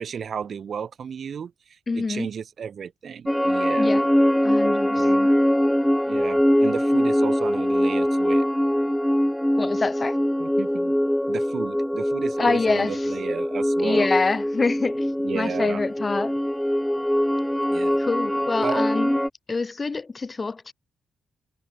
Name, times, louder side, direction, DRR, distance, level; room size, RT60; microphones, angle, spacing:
voice 1, 0.0-3.9 5.0-5.2 6.1-8.5 10.4-10.9 11.3-14.1 15.2-15.8 17.7-18.0 18.6-18.9, right 7 dB, 65° right, 6.5 m, -33 dB
voice 2, 1.9-2.3 3.8-4.0 4.4-5.3 9.6-10.2 12.4-13.1 13.8-16.3 18.0-19.1 19.5-20.7, left 4 dB, 40° left, 1.2 m, -26 dB
sound 1, 3.3-19.3, equal, 5° left, 2.9 m, -22 dB
hypercardioid pair, 45°, 0 cm